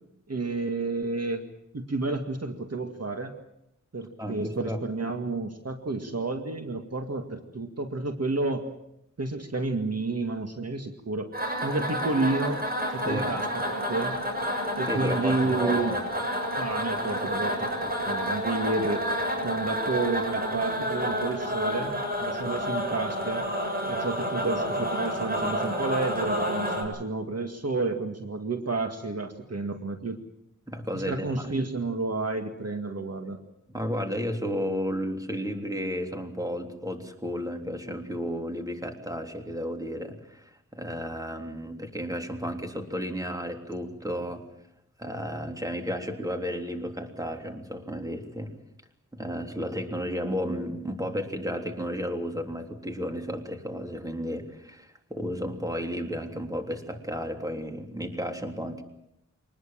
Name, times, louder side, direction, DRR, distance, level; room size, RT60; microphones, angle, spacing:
voice 1, 0.3-1.4 1.7-3.3 3.9-8.7 9.2-11.3 11.6-12.6 12.9-14.2 14.8-16.0 16.6-19.1 19.4-23.5 23.8-30.2 30.9-33.4, right 3 dB, 55° right, 5 dB, 2.0 m, -30 dB
voice 2, 4.2-4.8 13.0-13.3 14.9-16.0 30.7-31.5 33.7-44.4 45.0-48.5 49.1-58.8, equal, 10° right, 4 dB, 3.4 m, -33 dB
sound 1, 11.3-26.8, equal, 30° right, 7.2 m, -29 dB
24.5 x 20.0 x 7.6 m, 0.79 s
wide cardioid pair, 65°, 31 cm